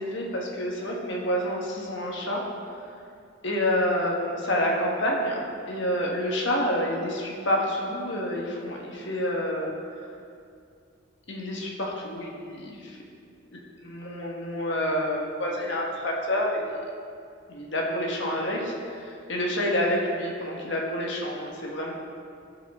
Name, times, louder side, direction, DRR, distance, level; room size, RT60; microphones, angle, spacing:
voice 1, 0.0-2.4 3.4-5.4 5.7-9.7 11.3-13.0 13.5-16.6 17.5-21.9, equal, 65° left, -1 dB, 1.4 m, -28 dB
14.0 x 5.6 x 3.7 m, 2.4 s
head